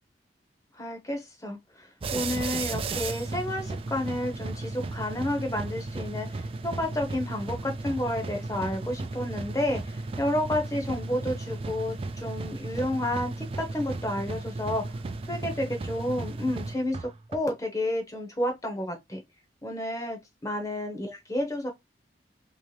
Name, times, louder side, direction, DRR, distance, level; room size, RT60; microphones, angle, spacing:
voice 1, 0.8-14.9 15.3-19.2 19.6-21.7, left 1 dB, 20° left, 0.9 m, -31 dB
sound 1, 2.0-17.4, right 3 dB, 30° right, 0.3 m, -35 dB
3.2 x 2.8 x 3.2 m
head